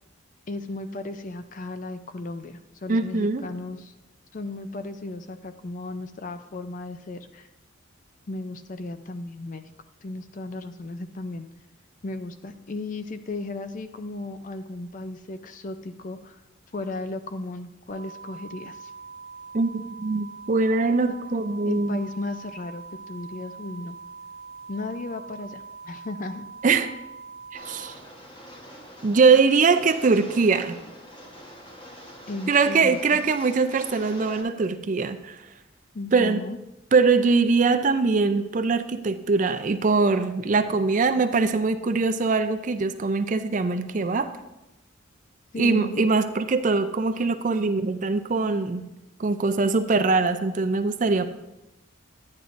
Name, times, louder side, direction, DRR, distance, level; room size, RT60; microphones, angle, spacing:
voice 1, 0.5-3.9 4.3-7.5 8.3-9.6 10.0-11.5 12.0-16.4 16.7-18.9 21.1-21.2 21.6-24.0 24.7-26.5 32.3-33.0 35.9-36.6 45.5-46.0, left 2 dB, 40° left, 9 dB, 0.4 m, -35 dB
voice 2, 2.9-3.4 19.5-22.0 26.6-26.9 27.7-27.9 29.0-30.8 32.5-35.4 36.1-36.4 36.9-44.3 45.6-48.9 49.2-51.3, right 4 dB, 40° right, 9 dB, 0.4 m, -22 dB
sound 1, 17.9-27.9, right 5 dB, 70° right, 1.1 m, -43 dB
Rain, 27.5-34.4, equal, 20° left, 1.1 m, -45 dB
10.5 x 9.5 x 2.6 m, 0.95 s
head